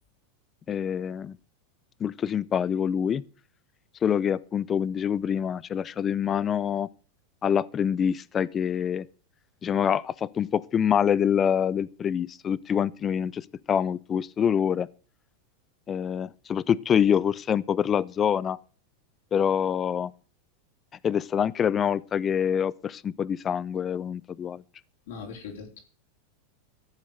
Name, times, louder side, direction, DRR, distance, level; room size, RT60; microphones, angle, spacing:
voice 1, 0.7-1.4 2.0-3.2 4.0-6.9 7.4-9.1 9.6-14.9 15.9-18.6 19.3-20.1 21.0-24.6, left 8 dB, 30° left, 0.6 m, -26 dB
voice 2, 25.1-25.8, left 5 dB, 75° left, 3.8 m, -40 dB
14.0 x 7.4 x 6.5 m
hypercardioid pair, 115°, 0 cm